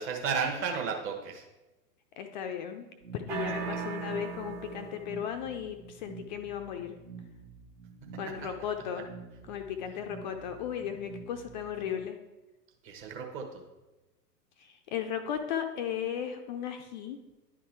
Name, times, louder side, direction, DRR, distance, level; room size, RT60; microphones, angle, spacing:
voice 1, 0.0-1.4 3.7-3.8 12.8-13.6, right 5 dB, 25° right, 2 dB, 1.1 m, -33 dB
voice 2, 2.2-2.9 3.1-6.9 8.2-9.1 9.4-12.2 14.6-17.2, left 9 dB, 30° left, 6 dB, 0.5 m, -36 dB
sound 1, 3.0-12.0, right 5 dB, 90° right, 2.2 m, -49 dB
sound 2, 3.3-5.2, right 5 dB, 40° right, 1.6 m, -37 dB
10.5 x 3.7 x 4.6 m, 1.1 s
figure-of-eight pair, 95°, 48 cm